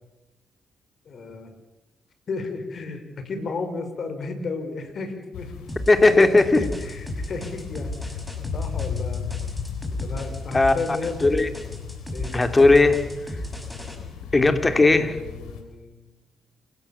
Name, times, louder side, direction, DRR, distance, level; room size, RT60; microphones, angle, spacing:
voice 1, 1.1-1.5 2.3-5.5 6.4-8.2 8.5-9.2 10.0-11.6 12.1-12.4 14.6-16.2, left 3 dB, 60° left, 7 dB, 5.5 m, -33 dB
sound 1, 5.3-15.6, left 7 dB, 85° left, 3.4 m, -35 dB
sound 2, 5.7-14.0, equal, 5° left, 7.5 m, -35 dB
voice 2, 5.9-6.6 10.5-10.7 11.2-11.5 12.3-13.0 14.3-15.1, left 2 dB, 30° left, 8 dB, 3.4 m, -17 dB
28.5 x 18.5 x 7.3 m, 1.0 s
hypercardioid pair, 50°, 0 cm